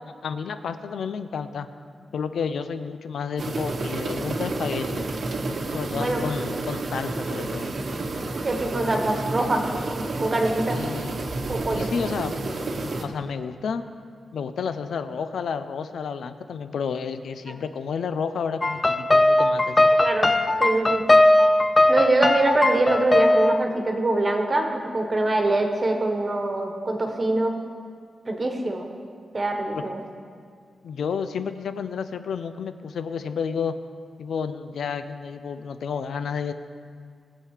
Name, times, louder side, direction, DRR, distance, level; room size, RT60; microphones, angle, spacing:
voice 1, 0.2-1.7 2.1-5.0 5.6-7.7 10.7-11.2 11.7-12.3 12.7-13.8 14.3-20.0 29.7-29.8 30.8-33.7 34.2-36.5, left 6 dB, 85° left, 10 dB, 0.6 m, -31 dB
sound 1, 3.4-13.1, right 2 dB, 50° right, 1.1 m, -30 dB
voice 2, 5.9-6.2 8.4-9.6 10.2-10.8 11.5-11.9 17.5-17.6 20.0-20.3 20.6-21.0 21.9-27.6 28.2-28.9 29.3-30.0, right 2 dB, 25° right, 3 dB, 1.4 m, -24 dB
sound 2, 18.6-23.6, left 1 dB, 20° left, 0.4 m, -19 dB
20.0 x 7.7 x 4.9 m, 2.1 s
wide cardioid pair, 155°, 0 cm